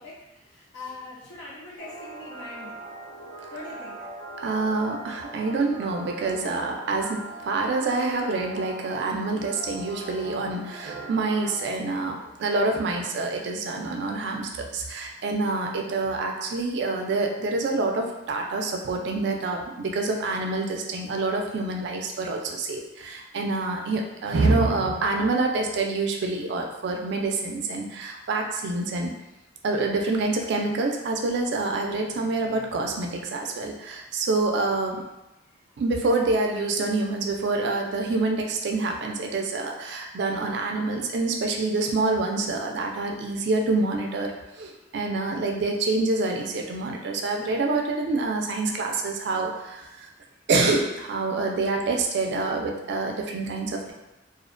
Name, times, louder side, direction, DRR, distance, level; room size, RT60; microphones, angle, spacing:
voice 1, 0.0-2.8 3.5-4.0, left 2 dB, 70° left, -6 dB, 0.6 m, -42 dB
sound 1, 1.8-11.6, right 2 dB, 20° left, 0.6 m, -41 dB
voice 2, 4.4-29.1 29.6-35.0 35.8-44.3 44.6-49.9 50.5-53.9, right 3 dB, 65° right, 2 dB, 0.3 m, -26 dB
2.4 x 2.1 x 2.4 m, 0.98 s
head